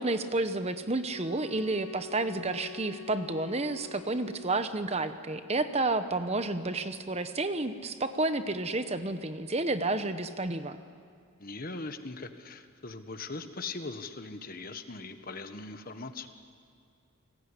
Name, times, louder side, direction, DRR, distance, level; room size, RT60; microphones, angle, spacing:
voice 1, 0.0-10.8, right 2 dB, 30° right, 10 dB, 1.0 m, -30 dB
sound 1, 1.1-5.0, left 6 dB, 75° left, 0.7 m, -46 dB
voice 2, 11.4-16.3, left 3 dB, 40° left, 9 dB, 1.4 m, -40 dB
29.5 x 19.5 x 10.0 m, 2.4 s
head